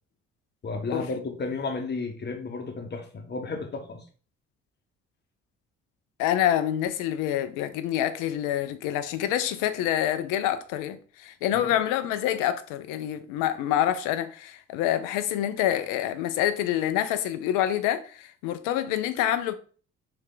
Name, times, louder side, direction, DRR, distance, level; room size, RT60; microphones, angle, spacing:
voice 1, 0.6-4.0 11.5-11.7, left 3 dB, 30° left, 0.9 m, -33 dB
voice 2, 6.2-19.5, left 11 dB, 60° left, 0.5 m, -27 dB
3.3 x 2.7 x 3.8 m
figure-of-eight pair, 45°, 36 cm